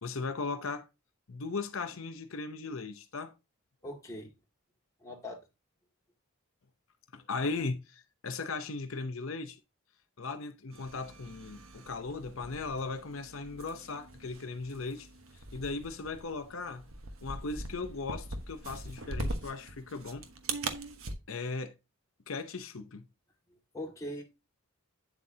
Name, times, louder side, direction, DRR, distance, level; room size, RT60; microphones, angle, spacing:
voice 1, 0.0-0.9 1.3-3.3 7.1-9.6 10.2-15.1 15.5-16.8 17.2-20.2 21.3-21.8 22.3-23.1, left 3 dB, 70° left, 0.7 m, -37 dB
voice 2, 3.8-4.3 5.0-5.4 23.7-24.2, left 1 dB, 15° left, 2.1 m, -40 dB
sound 1, 10.7-21.1, right 2 dB, 75° right, 1.2 m, -42 dB
8.9 x 7.5 x 2.8 m
head